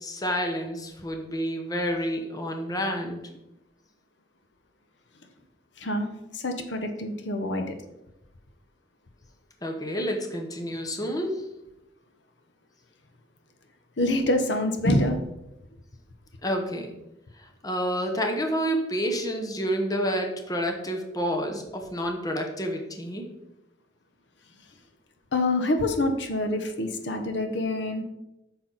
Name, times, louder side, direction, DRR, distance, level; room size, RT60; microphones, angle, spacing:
voice 1, 0.0-3.2 9.6-11.4 16.4-16.9 17.4-23.3, equal, 20° left, 3 dB, 1.0 m, -29 dB
voice 2, 5.8-6.1 6.3-7.7 14.0-15.2 25.3-28.0, left 1 dB, 75° left, 6 dB, 0.9 m, -26 dB
8.7 x 6.1 x 4.0 m, 0.91 s
head